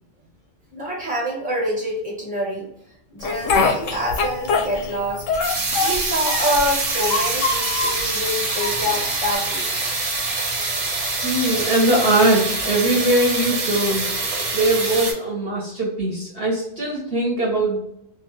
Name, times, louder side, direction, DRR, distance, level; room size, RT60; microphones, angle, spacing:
voice 1, 0.7-2.7 3.1-5.2 5.8-9.7 10.6-10.7, equal, 5° right, -3 dB, 1.0 m, -26 dB
Speech, 3.2-5.0 5.3-6.7 7.0-8.0 8.6-9.3, left 4 dB, 85° left, 0.9 m, -23 dB
sound 1, 3.5-15.1, right 3 dB, 80° right, 1.2 m, -25 dB
voice 2, 11.2-14.1 14.5-17.8, right 1 dB, 55° right, -3 dB, 1.0 m, -21 dB
2.7 x 2.3 x 3.0 m, 0.76 s
omnidirectional pair, 1.3 m